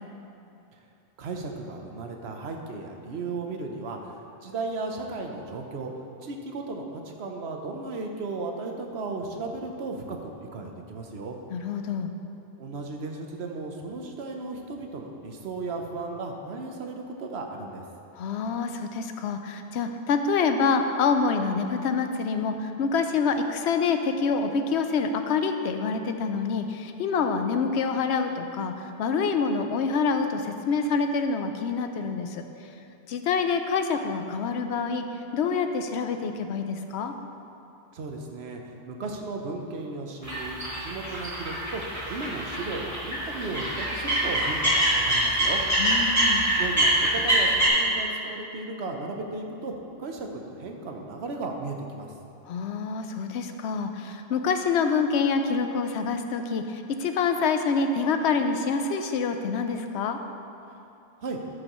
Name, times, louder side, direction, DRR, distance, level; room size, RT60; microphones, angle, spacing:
voice 1, 1.2-5.9 6.2-11.4 12.6-17.8 37.9-38.6 38.9-45.6 46.6-52.1 61.2-61.4, right 3 dB, 75° right, 2 dB, 1.1 m, -35 dB
voice 2, 11.5-12.1 18.2-32.5 33.1-35.0 35.3-37.1 45.8-46.5 52.5-60.2, left 5 dB, 85° left, 7 dB, 0.9 m, -26 dB
sound 1, 40.2-47.7, right 1 dB, 15° right, 2.1 m, -25 dB
12.5 x 6.3 x 3.0 m, 2.7 s
omnidirectional pair, 1.1 m